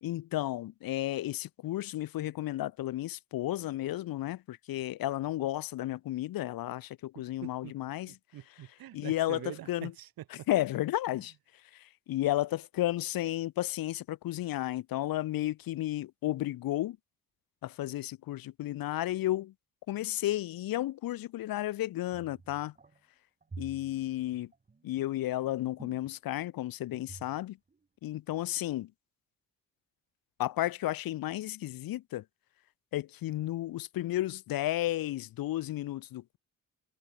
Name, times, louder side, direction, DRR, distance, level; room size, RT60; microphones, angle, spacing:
voice 1, 0.0-8.2 8.9-9.9 10.3-11.3 11.7-17.0 17.6-19.5 19.9-22.7 23.6-24.5 24.8-27.6 28.0-28.9 30.4-32.2 32.9-36.4, left 14 dB, 80° left, 0.8 m, -33 dB
voice 2, 7.1-7.7 8.3-10.5 11.1-11.2, right 13 dB, 80° right, 1.4 m, -45 dB
sound 1, 22.1-23.0 23.4-26.5 26.9-27.4 27.7-27.8, right 4 dB, 25° right, 1.4 m, -49 dB
cardioid pair, 85°, 35 cm